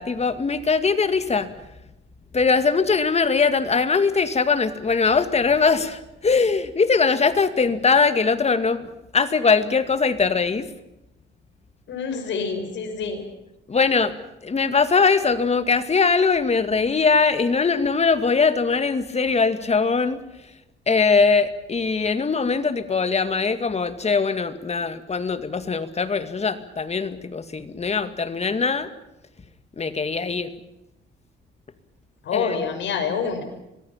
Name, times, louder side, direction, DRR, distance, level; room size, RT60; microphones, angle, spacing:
voice 1, 0.0-1.5 2.3-10.7 13.7-14.2 14.4-20.2 20.9-28.9 29.8-30.5 32.3-32.6, left 4 dB, 35° left, 11 dB, 2.2 m, -21 dB
voice 2, 11.9-13.2 32.2-33.4, left 6 dB, 70° left, 6 dB, 6.1 m, -27 dB
25.5 x 20.0 x 7.4 m, 0.91 s
cardioid pair, 90°, 20 cm